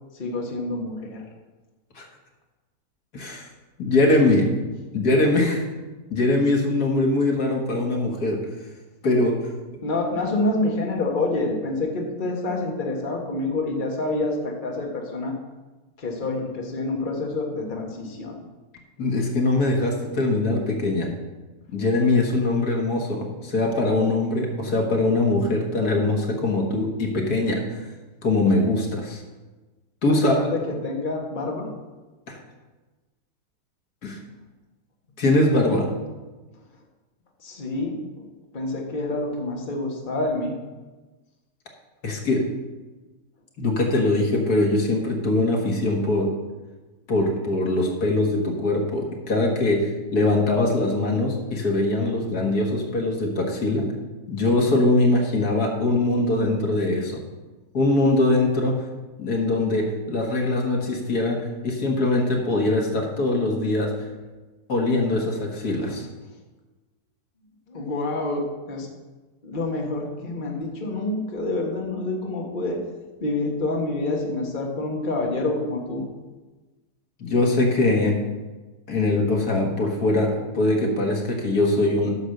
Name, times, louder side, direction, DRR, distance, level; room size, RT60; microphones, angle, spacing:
voice 1, 0.1-1.2 9.8-15.3 16.0-18.4 30.1-31.7 37.4-38.2 38.5-40.6 67.7-68.9 69.4-72.8 73.2-76.0, left 2 dB, 35° left, 0 dB, 1.5 m, -27 dB
voice 2, 3.1-3.5 3.8-4.5 4.9-5.7 6.1-8.4 9.0-9.4 19.0-21.1 21.7-27.8 28.2-29.2 30.0-30.3 32.3-32.4 34.0-34.2 35.2-35.9 42.0-42.5 43.6-46.3 47.1-53.9 54.3-57.2 57.7-58.8 59.2-63.9 64.7-66.0 77.2-78.2 78.9-82.1, left 2 dB, 75° left, 1 dB, 2.1 m, -22 dB
9.7 x 6.5 x 6.5 m, 1.2 s
omnidirectional pair, 1.7 m